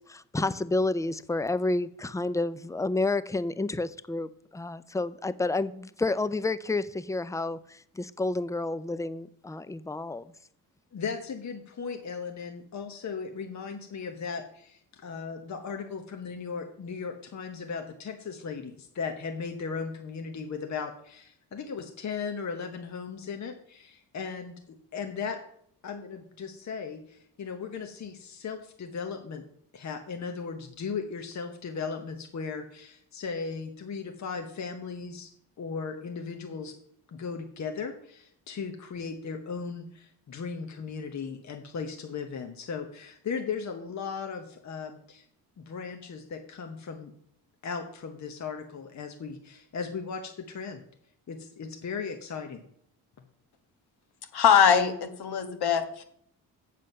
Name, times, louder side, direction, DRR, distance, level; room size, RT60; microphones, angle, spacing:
voice 1, 0.0-10.2, left 2 dB, 10° left, 16 dB, 0.4 m, -30 dB
voice 2, 10.9-25.4 25.8-29.4 29.7-35.3 35.6-36.7 37.1-45.2 45.6-47.1 47.6-50.8 51.3-52.6, left 5 dB, 45° left, 5 dB, 1.0 m, -37 dB
voice 3, 54.3-56.0, left 8 dB, 70° left, 8 dB, 1.4 m, -22 dB
7.6 x 7.4 x 5.4 m, 0.68 s
cardioid pair, 85°, 40 cm